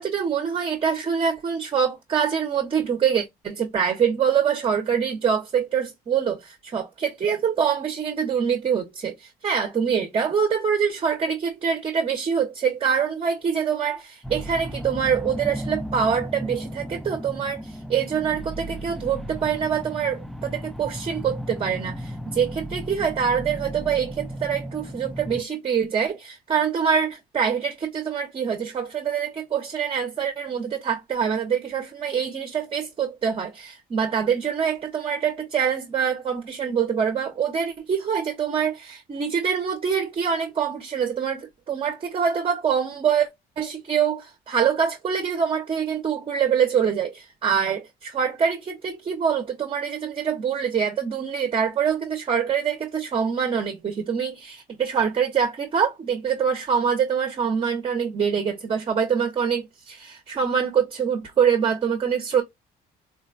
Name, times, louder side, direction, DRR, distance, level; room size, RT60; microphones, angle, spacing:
voice 1, 0.0-43.3 43.6-62.4, right 7 dB, 35° right, 0.7 m, -25 dB
sound 1, 14.2-25.4, equal, ahead, 0.3 m, -35 dB
3.9 x 2.1 x 2.5 m
cardioid pair, 110°, 17 cm